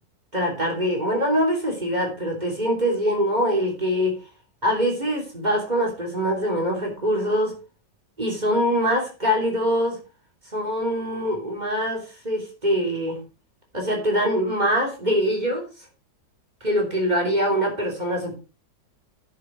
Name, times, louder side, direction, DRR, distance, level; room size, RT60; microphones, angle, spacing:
voice 1, 0.3-4.1 4.6-7.6 8.2-10.0 10.5-13.2 13.7-15.6 16.6-18.4, equal, 20° right, 0 dB, 3.4 m, -23 dB
10.0 x 7.5 x 4.7 m, 0.32 s
omnidirectional pair, 2.0 m